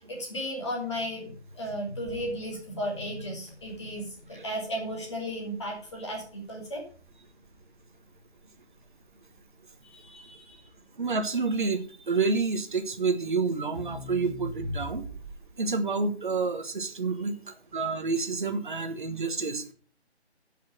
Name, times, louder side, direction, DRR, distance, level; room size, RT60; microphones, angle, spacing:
voice 1, 0.0-6.8 9.9-10.6, equal, 25° left, -1 dB, 2.8 m, -35 dB
Crackle, 2.0-15.6, equal, 10° right, 2.2 m, -44 dB
voice 2, 11.0-15.0 15.6-17.4 17.7-19.6, right 4 dB, 45° right, 7 dB, 1.4 m, -28 dB
10.5 x 5.8 x 6.4 m, 0.42 s
figure-of-eight pair, 170°, 33 cm